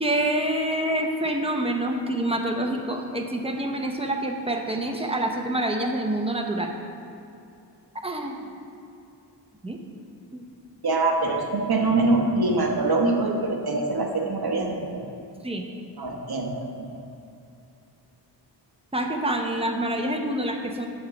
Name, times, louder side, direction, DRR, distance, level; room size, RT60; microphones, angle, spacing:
voice 1, 0.0-6.7 7.9-8.4 9.6-9.8 10.3-10.5 15.4-15.6 18.9-20.9, right 1 dB, 15° right, 2 dB, 0.8 m, -27 dB
voice 2, 10.8-15.0 16.0-17.0, right 2 dB, 55° right, 1 dB, 1.1 m, -24 dB
9.7 x 3.7 x 7.0 m, 2.6 s
wide cardioid pair, 95°, 44 cm